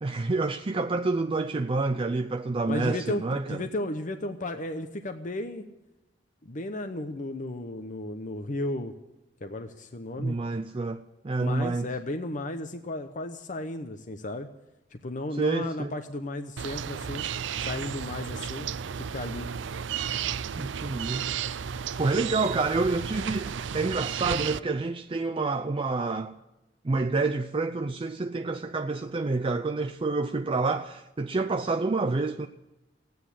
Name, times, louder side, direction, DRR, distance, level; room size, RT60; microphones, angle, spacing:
voice 1, 0.0-3.6 10.2-11.9 15.3-15.9 20.6-26.3 26.8-32.5, right 3 dB, 30° right, 0.5 m, -28 dB
voice 2, 2.7-5.7 6.4-8.9 9.4-10.4 11.4-14.5 14.9-17.2 17.6-18.7 19.1-19.5, left 1 dB, 45° left, 0.9 m, -34 dB
sound 1, 16.6-24.6, right 7 dB, 85° right, 0.5 m, -33 dB
15.5 x 9.4 x 9.9 m
head